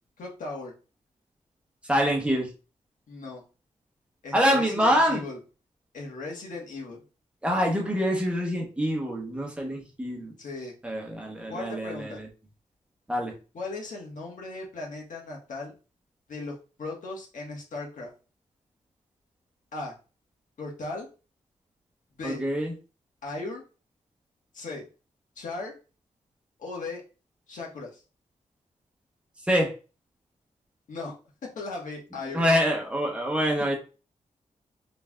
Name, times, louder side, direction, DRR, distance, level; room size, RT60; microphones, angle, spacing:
voice 1, 0.2-0.7 3.1-3.4 4.2-5.4 5.9-7.0 10.4-10.7 11.5-12.2 13.5-15.7 16.3-18.1 19.7-19.9 20.6-21.1 22.1-22.4 23.2-23.6 24.5-24.8 25.3-25.7 26.6-27.0 27.5-28.0 30.9-31.1 31.5-32.4, left 3 dB, 85° left, -1 dB, 1.4 m, -37 dB
voice 2, 1.9-2.5 4.3-5.2 7.4-10.3 10.8-12.3 13.1-13.3 22.2-22.7 29.5-29.7 32.3-33.7, equal, 10° right, 0 dB, 0.9 m, -25 dB
4.0 x 3.3 x 2.3 m, 0.33 s
wide cardioid pair, 155°, 13 cm